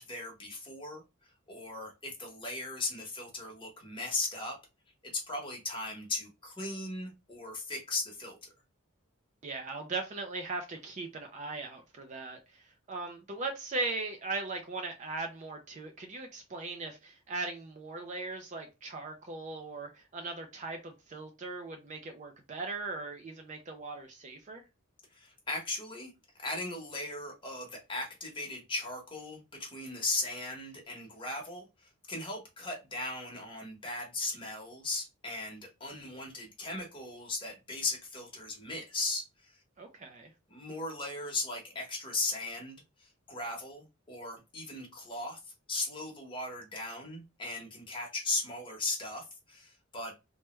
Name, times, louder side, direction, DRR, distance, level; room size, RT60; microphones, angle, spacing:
voice 1, 0.0-4.6 5.0-8.5 25.1-26.1 26.4-39.6 40.5-45.4 45.7-50.1, left 2 dB, 25° left, 1.0 m, -37 dB
voice 2, 9.4-24.6 39.8-40.3, right 3 dB, 35° right, 0.4 m, -39 dB
3.3 x 2.2 x 3.0 m
head